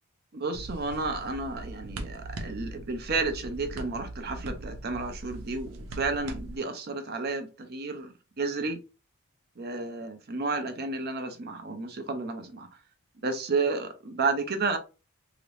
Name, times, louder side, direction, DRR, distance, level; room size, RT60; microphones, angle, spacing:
voice 1, 0.3-8.8 9.6-12.7 13.2-14.8, right 3 dB, 45° right, 0.6 m, -31 dB
sound 1, 0.5-6.6, right 1 dB, 85° right, 0.6 m, -40 dB
2.9 x 2.5 x 3.2 m
head